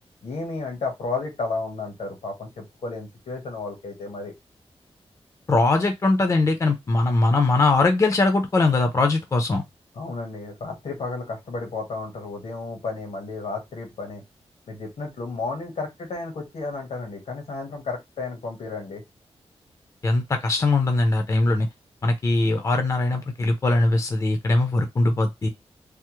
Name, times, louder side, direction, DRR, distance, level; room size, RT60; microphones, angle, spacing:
voice 1, 0.2-4.3 9.9-14.2 14.7-19.0, left 3 dB, 80° left, 1.3 m, -32 dB
voice 2, 5.5-9.6 20.0-21.7 22.0-25.5, left 2 dB, 30° left, 0.5 m, -21 dB
3.3 x 2.0 x 3.0 m
wide cardioid pair, 160°, 11 cm